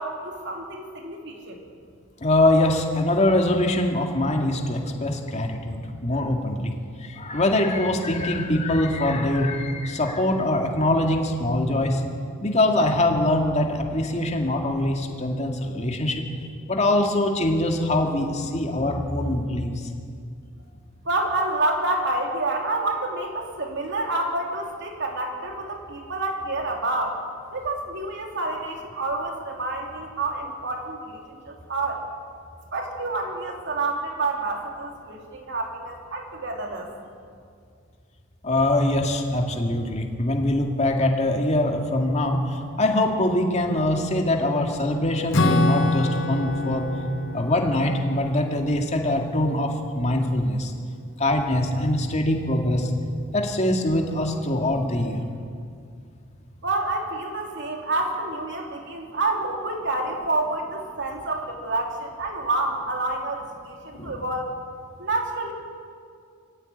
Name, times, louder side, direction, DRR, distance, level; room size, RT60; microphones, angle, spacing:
voice 1, 0.0-1.6 21.0-27.2 27.5-32.1 32.7-36.9 56.6-64.5 65.0-65.5, right 2 dB, 60° right, 2 dB, 3.2 m, -28 dB
voice 2, 2.2-6.7 7.0-12.0 12.4-16.2 16.7-19.7 38.4-46.9 47.3-50.7 51.2-52.9 53.3-55.3 63.9-64.1, left 1 dB, 35° left, 2 dB, 2.3 m, -23 dB
Acoustic guitar / Strum, 45.3-50.1, left 2 dB, 60° left, 1.2 m, -26 dB
21.5 x 15.5 x 9.2 m, 2.3 s
head